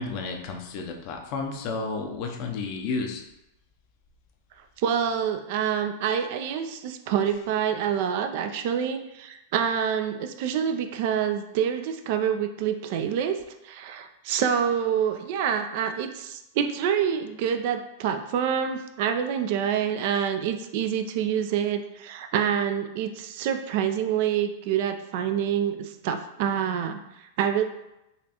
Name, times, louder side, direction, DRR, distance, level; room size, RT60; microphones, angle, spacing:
voice 1, 0.0-3.2, left 4 dB, 50° left, 3 dB, 0.5 m, -32 dB
voice 2, 4.8-13.4 13.6-27.6, right 8 dB, 60° right, 7 dB, 0.3 m, -27 dB
4.0 x 2.4 x 2.8 m, 0.90 s
hypercardioid pair, 105°, 0 cm